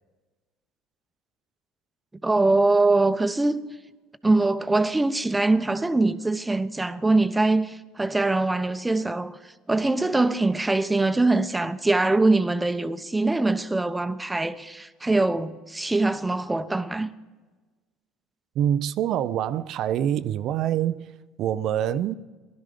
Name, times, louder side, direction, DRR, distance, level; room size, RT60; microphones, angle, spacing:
voice 1, 2.2-3.7 4.2-9.4 9.7-17.1, right 2 dB, 15° right, 0.9 m, -23 dB
voice 2, 18.5-21.1 21.4-22.1, right 10 dB, 60° right, 0.5 m, -25 dB
18.0 x 12.0 x 5.1 m
hypercardioid pair, 75°, 0 cm